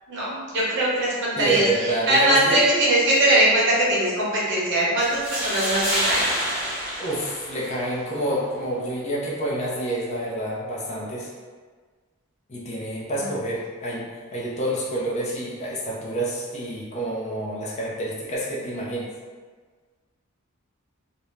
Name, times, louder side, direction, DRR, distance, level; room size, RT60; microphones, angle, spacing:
voice 1, 0.1-1.6 2.1-6.2, right 1 dB, 60° right, -6 dB, 0.8 m, -21 dB
voice 2, 1.4-2.6 7.0-11.3 12.5-19.1, right 1 dB, 30° left, -5 dB, 0.5 m, -28 dB
sound 1, 5.0-8.0, equal, 5° right, 0.8 m, -27 dB
2.5 x 2.1 x 3.1 m, 1.5 s
head